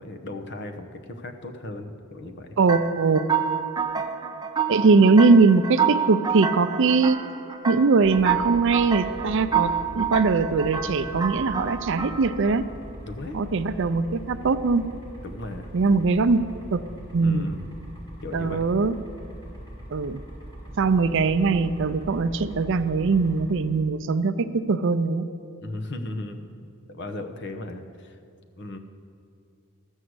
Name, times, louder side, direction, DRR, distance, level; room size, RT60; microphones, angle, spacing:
voice 1, 0.0-2.5 13.0-13.4 15.2-16.0 17.2-17.7 18.2-18.6 25.6-28.2 28.6-28.8, left 2 dB, 55° left, 7 dB, 0.9 m, -36 dB
voice 2, 2.6-3.2 4.7-7.2 7.6-12.7 13.3-14.8 15.7-16.8 17.1-17.5 18.3-18.9 19.9-20.2 20.8-25.3, right 4 dB, 65° right, 12 dB, 0.5 m, -21 dB
sound 1, 2.7-12.6, right 7 dB, 20° right, 0.7 m, -28 dB
sound 2, 8.0-23.5, right 1 dB, 25° left, 2.4 m, -41 dB
13.5 x 6.3 x 7.9 m, 2.5 s
head